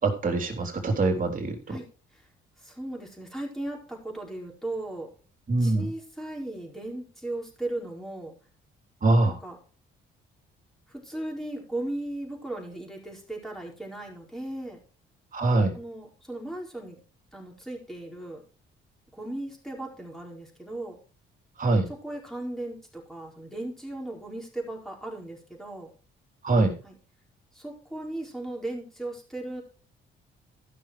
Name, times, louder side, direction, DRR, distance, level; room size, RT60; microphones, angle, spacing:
voice 1, 0.0-1.8 5.5-5.9 9.0-9.4 15.3-15.7 21.6-21.9 26.4-26.7, right 2 dB, 45° right, 3 dB, 3.4 m, -23 dB
voice 2, 2.6-5.1 5.6-8.3 9.2-9.6 10.9-14.8 15.7-17.0 17.3-18.4 19.1-21.0 21.9-25.9 26.8-27.0 27.5-29.6, right 1 dB, ahead, 0 dB, 4.7 m, -37 dB
14.0 x 6.2 x 5.0 m, 0.37 s
cardioid pair, 90°, 20 cm